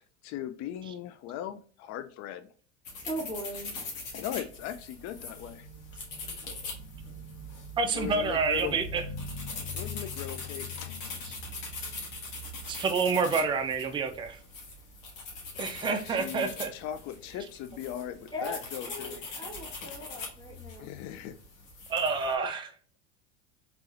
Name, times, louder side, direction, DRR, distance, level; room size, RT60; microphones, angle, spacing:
voice 1, 0.0-2.5 3.7-3.9 4.1-5.7 7.9-8.8 9.7-11.0 15.8-19.1 20.2-20.3 20.8-21.4, left 11 dB, 45° left, 10 dB, 0.4 m, -39 dB
sound 1, 2.8-22.3, left 3 dB, 80° left, 1.5 m, -41 dB
voice 2, 3.0-3.7 18.3-18.6 18.8-20.9, equal, 10° left, -2 dB, 1.3 m, -39 dB
voice 3, 7.8-9.0 11.3-11.4 12.7-14.4 15.6-16.7 21.9-22.7, right 5 dB, 15° right, 6 dB, 0.4 m, -28 dB
3.6 x 3.2 x 2.4 m, 0.40 s
hypercardioid pair, 95°, 39 cm